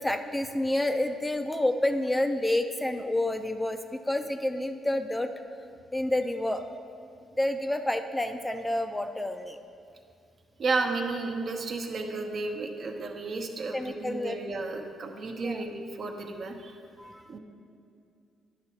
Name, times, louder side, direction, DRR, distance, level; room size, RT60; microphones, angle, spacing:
voice 1, 0.0-5.3 5.9-6.6 7.4-9.6 13.7-14.4 15.4-15.6 17.0-17.3, left 1 dB, 10° left, 7 dB, 0.4 m, -29 dB
voice 2, 10.6-16.8 17.3-17.4, right 3 dB, 55° right, 3 dB, 1.0 m, -32 dB
10.5 x 6.3 x 4.4 m, 2.4 s
cardioid pair, 90°, 0 cm